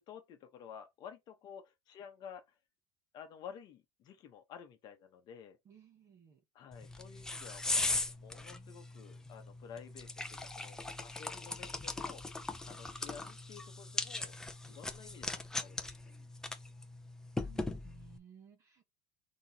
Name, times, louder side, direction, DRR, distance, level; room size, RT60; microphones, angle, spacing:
voice 1, 0.0-2.4 3.1-5.6 6.5-14.3 14.7-16.1, left 8 dB, 35° left, 1.0 m, -52 dB
voice 2, 5.6-6.4 17.4-18.8, right 8 dB, 25° right, 1.2 m, -59 dB
sound 1, 6.7-18.2, left 2 dB, 5° left, 0.5 m, -39 dB
6.0 x 3.0 x 2.8 m
cardioid pair, 165°, 11 cm